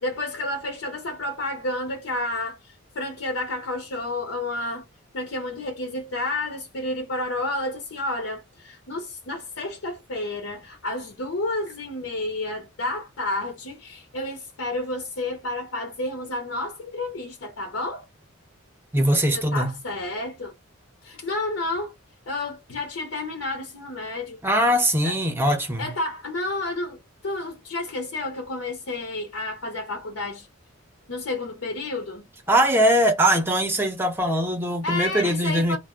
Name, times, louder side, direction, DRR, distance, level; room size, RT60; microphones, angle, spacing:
voice 1, 0.0-4.9 5.1-18.1 19.3-20.5 21.0-21.9 22.3-24.4 25.0-25.2 25.8-30.5 31.1-32.3 34.8-35.8, left 2 dB, 70° left, 0.7 m, -30 dB
voice 2, 18.9-19.7 24.4-25.9 32.5-35.8, right 1 dB, 10° right, 0.6 m, -21 dB
2.4 x 2.0 x 3.6 m
head